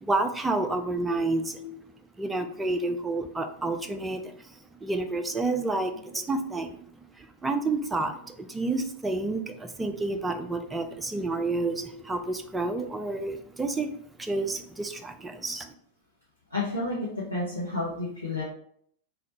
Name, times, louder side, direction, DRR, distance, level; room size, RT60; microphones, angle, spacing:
voice 1, 0.0-1.6 2.2-4.5 4.8-13.9 14.2-15.7, right 2 dB, 10° right, 7 dB, 0.4 m, -30 dB
voice 2, 16.5-18.4, left 2 dB, 80° left, -7 dB, 0.9 m, -31 dB
3.8 x 3.3 x 2.9 m, 0.64 s
figure-of-eight pair, 90°, 0 cm